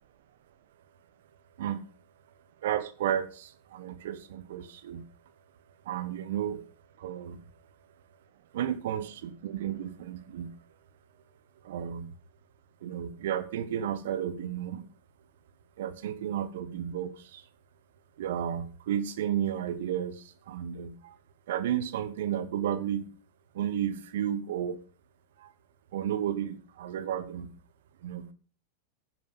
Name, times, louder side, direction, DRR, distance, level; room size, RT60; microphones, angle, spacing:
voice 1, 2.6-5.0 5.9-6.6 7.0-7.4 8.5-10.5 11.6-12.1 12.8-14.9 15.8-17.4 18.2-21.2 21.5-23.1 23.5-24.8 25.4-25.5 25.9-27.5 28.0-28.3, right 10 dB, 55° right, 1.4 m, -32 dB
11.0 x 10.5 x 5.6 m
figure-of-eight pair, 90°, 0 cm